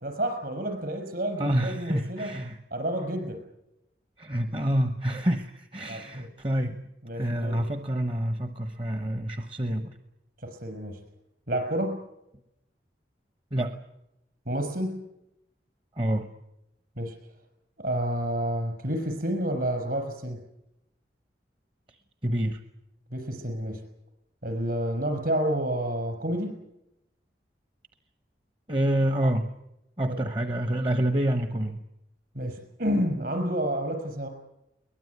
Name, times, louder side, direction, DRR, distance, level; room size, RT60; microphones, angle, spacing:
voice 1, 0.0-2.3 2.7-3.4 5.9-6.3 7.0-7.6 10.4-11.0 11.5-12.1 14.5-15.0 17.0-17.1 17.8-20.4 23.1-23.8 24.4-26.6 30.1-30.2 32.3-34.3, right 1 dB, 55° right, 6 dB, 5.9 m, -29 dB
voice 2, 1.4-2.6 4.2-6.8 7.1-10.0 13.5-13.8 16.0-16.3 22.2-22.6 28.7-29.5 30.0-31.8, right 1 dB, 30° right, 8 dB, 1.0 m, -27 dB
22.5 x 20.0 x 9.5 m, 0.86 s
head